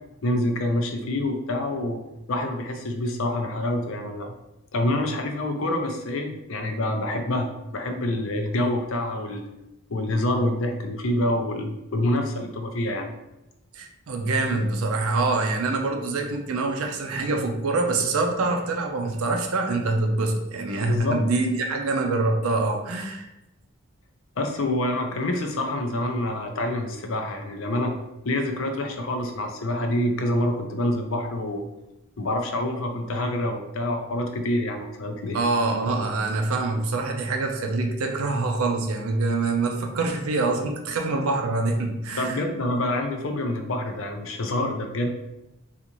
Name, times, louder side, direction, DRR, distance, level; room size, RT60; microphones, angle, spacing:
voice 1, 0.2-2.0 2.3-4.3 4.7-9.5 9.9-13.1 20.9-21.2 24.4-28.0 28.2-31.6 32.2-35.4 42.2-45.1, left 1 dB, 70° left, 4 dB, 0.5 m, -26 dB
voice 2, 13.7-23.3 35.3-42.4, right 3 dB, 85° right, 3 dB, 0.5 m, -25 dB
3.8 x 2.5 x 2.9 m, 0.95 s
head